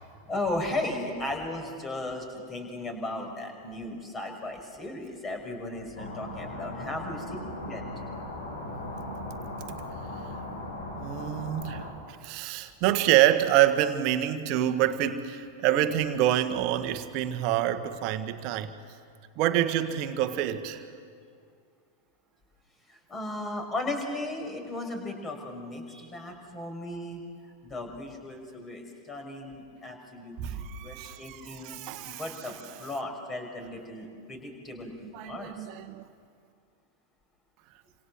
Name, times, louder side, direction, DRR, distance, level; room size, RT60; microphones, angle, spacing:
voice 1, 0.2-7.4 7.6-7.8 22.9-27.2 27.6-35.7, left 2 dB, 20° left, 5.7 m, -36 dB
sound 1, 5.9-11.9, left 1 dB, 65° left, 6.6 m, -38 dB
voice 2, 11.0-18.7 19.4-20.8 30.4-31.4 31.6-32.2 35.1-36.0, right 12 dB, 45° right, 1.7 m, -27 dB
28.0 x 26.5 x 7.7 m
figure-of-eight pair, 90°, 0 cm